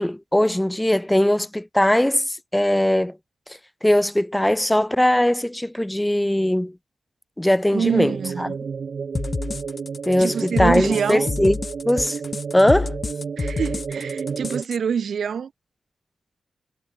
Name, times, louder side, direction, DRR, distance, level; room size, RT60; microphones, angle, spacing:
voice 1, 0.0-3.2 3.8-6.8 7.4-8.6 10.1-11.6 11.9-12.2 12.5-12.9, left 1 dB, 5° left, 1.3 m, -20 dB
voice 2, 7.7-8.6 10.2-11.3 13.4-15.5, right 7 dB, 70° right, 2.8 m, -25 dB
sound 1, 7.8-14.6, right 5 dB, 55° right, 2.5 m, -31 dB
sound 2, 9.1-14.8, left 4 dB, 40° left, 3.3 m, -28 dB
wide cardioid pair, 105°, 0 cm